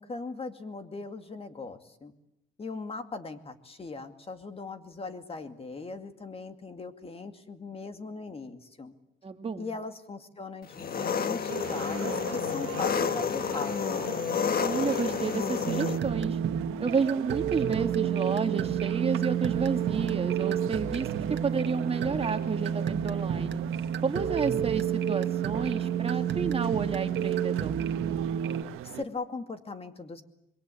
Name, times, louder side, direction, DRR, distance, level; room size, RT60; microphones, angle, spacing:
voice 1, 0.0-2.1 2.6-8.9 9.6-14.1 28.8-30.2, left 3 dB, 30° left, 8 dB, 2.3 m, -39 dB
voice 2, 9.2-9.7 14.6-16.4 16.8-23.6 24.0-27.7, right 5 dB, 30° right, 6 dB, 2.2 m, -31 dB
Engine, 10.7-16.0, left 7 dB, 45° left, 1.7 m, -30 dB
sound 1, 11.5-29.0, right 13 dB, 90° right, 1.3 m, -41 dB
sound 2, 15.6-28.6, right 9 dB, 60° right, 1.6 m, -30 dB
26.5 x 22.5 x 8.5 m, 0.85 s
cardioid pair, 120°, 21 cm